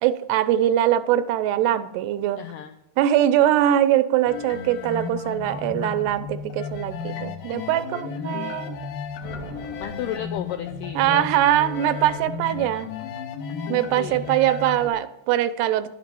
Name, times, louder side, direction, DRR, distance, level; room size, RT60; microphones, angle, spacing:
voice 1, 0.0-2.4 3.0-8.8 11.0-12.9 13.7-15.9, right 12 dB, 85° right, 13 dB, 2.8 m, -22 dB
voice 2, 2.4-2.8 9.8-11.3 13.9-14.3, left 10 dB, 90° left, 7 dB, 1.9 m, -33 dB
sound 1, 4.3-14.9, left 6 dB, 70° left, 2.5 m, -34 dB
sound 2, 9.2-11.3, right 2 dB, 35° right, 1.0 m, -43 dB
10.5 x 8.5 x 6.9 m, 0.80 s
omnidirectional pair, 4.6 m